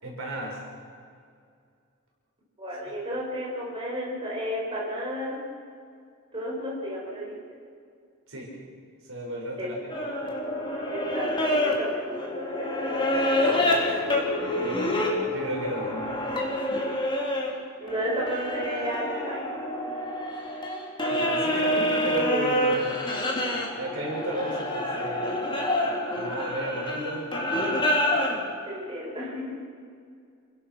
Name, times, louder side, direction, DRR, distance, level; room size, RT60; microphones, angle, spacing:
voice 1, 0.0-0.6 8.3-8.5 9.1-9.9 13.5-14.0 14.6-14.9 15.3-16.2 21.1-22.9 23.7-25.4 26.2-27.3 27.5-27.8, right 1 dB, 65° right, -2 dB, 6.5 m, -33 dB
voice 2, 2.6-5.4 6.3-7.4 9.6-9.7 10.9-12.9 14.5-15.0 17.8-19.4 28.7-29.6, equal, 25° right, -4 dB, 5.8 m, -33 dB
sound 1, 9.9-17.5 17.9-28.4, left 1 dB, 25° left, 3.3 m, -27 dB
29.0 x 17.0 x 6.2 m, 2.3 s
head